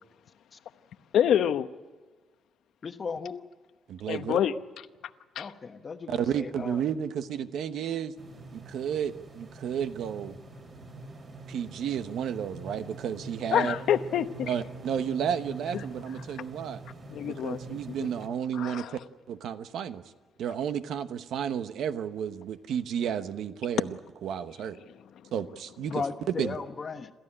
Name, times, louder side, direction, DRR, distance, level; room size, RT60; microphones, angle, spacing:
voice 1, 1.1-1.7 4.1-4.5 5.4-5.5 13.5-14.5 17.1-17.8 18.6-18.9, left 9 dB, 70° left, 10 dB, 0.9 m, -26 dB
voice 2, 2.8-3.4 5.4-6.9 25.9-27.1, left 5 dB, 30° left, 8 dB, 1.2 m, -36 dB
voice 3, 3.9-4.4 6.1-8.1 8.5-10.4 11.5-13.7 14.5-16.8 17.2-19.0 19.3-20.0 20.4-24.8 25.3-26.6, right 8 dB, 70° right, 11 dB, 1.0 m, -32 dB
sound 1, 8.2-18.3, right 3 dB, 35° right, 4.2 m, -44 dB
28.0 x 14.5 x 10.0 m, 1.4 s
cardioid pair, 160°, 0 cm